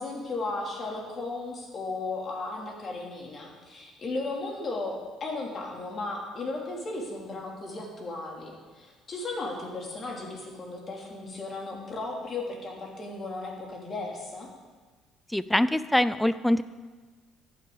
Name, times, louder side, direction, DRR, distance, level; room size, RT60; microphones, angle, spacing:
voice 1, 0.0-14.5, left 2 dB, 40° left, -1 dB, 3.0 m, -35 dB
voice 2, 15.3-16.6, left 1 dB, 5° left, 14 dB, 0.4 m, -24 dB
14.5 x 9.4 x 4.0 m, 1.3 s
cardioid pair, 100°, 0 cm